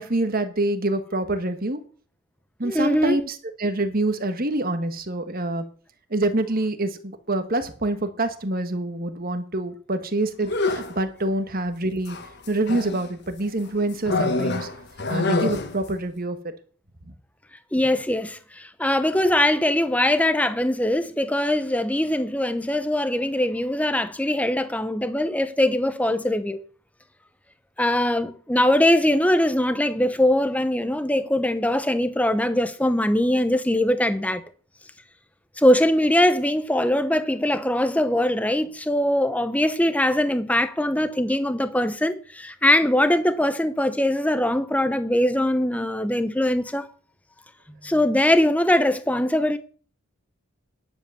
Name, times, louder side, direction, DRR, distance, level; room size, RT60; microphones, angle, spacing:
voice 1, 0.0-1.8 2.6-5.6 6.1-12.2 12.5-14.7 15.1-16.4 17.0-17.1, right 2 dB, 40° right, 1.4 m, -26 dB
voice 2, 2.6-3.2 17.7-26.6 27.8-34.4 35.6-46.9 47.8-49.6, left 1 dB, 5° left, 0.8 m, -22 dB
sound 1, 10.4-11.0 12.1-13.1 14.1-15.9, left 3 dB, 50° left, 1.3 m, -25 dB
10.5 x 7.6 x 7.0 m
head